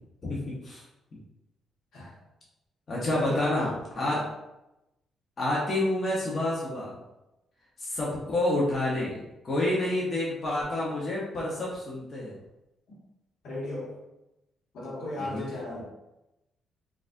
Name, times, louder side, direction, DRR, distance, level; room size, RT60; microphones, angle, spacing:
voice 1, 0.2-0.8 2.9-3.7 4.0-4.2 5.4-6.9 7.8-9.2 9.4-12.3 15.2-15.4, left 1 dB, 40° left, -5 dB, 0.8 m, -28 dB
voice 2, 3.1-4.2 6.7-6.9 13.4-13.9 14.7-15.8, left 1 dB, 75° left, -5 dB, 1.2 m, -36 dB
3.9 x 2.4 x 2.5 m, 0.94 s
cardioid pair, 90°, 0 cm